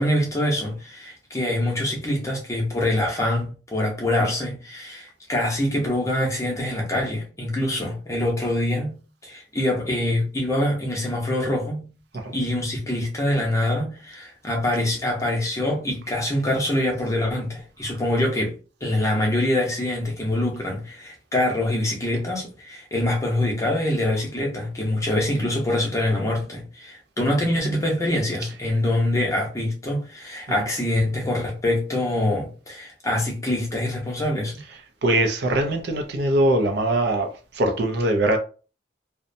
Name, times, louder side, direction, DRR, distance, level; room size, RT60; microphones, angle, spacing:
voice 1, 0.0-11.9 12.3-18.5 18.8-34.6, left 1 dB, 15° left, 0.7 m, -25 dB
voice 2, 35.0-38.4, right 1 dB, 55° right, 0.4 m, -22 dB
2.6 x 2.1 x 2.6 m
head